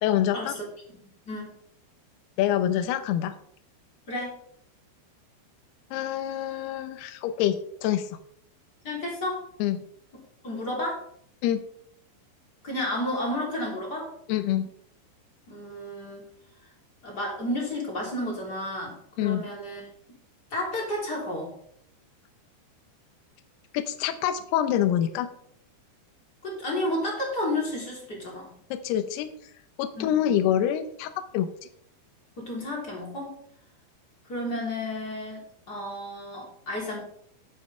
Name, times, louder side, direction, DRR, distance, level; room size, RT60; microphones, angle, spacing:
voice 1, 0.0-0.5 2.4-3.4 5.9-8.1 9.6-9.8 11.4-11.6 14.3-14.7 19.2-19.5 23.7-25.3 28.7-29.3 29.8-31.5, left 11 dB, 75° left, 9 dB, 2.5 m, -26 dB
voice 2, 8.8-9.4 10.4-11.0 12.6-14.1 15.5-16.3 17.0-19.8 20.5-21.5 26.4-28.5 29.9-30.1 32.4-33.3 34.3-35.4 35.7-37.0, left 1 dB, 25° left, -3 dB, 3.1 m, -31 dB
12.0 x 9.6 x 3.4 m, 0.65 s
omnidirectional pair, 5.5 m